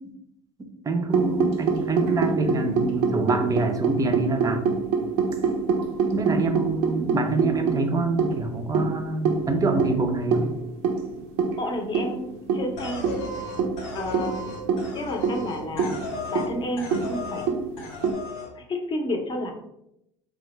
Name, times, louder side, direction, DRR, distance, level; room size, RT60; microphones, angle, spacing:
voice 1, 0.9-4.6 6.1-10.5, right 3 dB, 25° right, 6 dB, 0.5 m, -25 dB
sound 1, 1.1-18.1, right 5 dB, 70° right, 0.5 m, -26 dB
voice 2, 11.6-13.1 13.9-14.4 14.9-15.9 16.3-17.5 18.5-19.5, left 1 dB, 30° left, 4 dB, 0.7 m, -31 dB
sound 2, 12.8-16.5 16.8-17.5 17.8-18.5, left 2 dB, 85° left, 0.9 m, -35 dB
3.3 x 2.1 x 3.0 m, 0.80 s
hypercardioid pair, 85°, 15 cm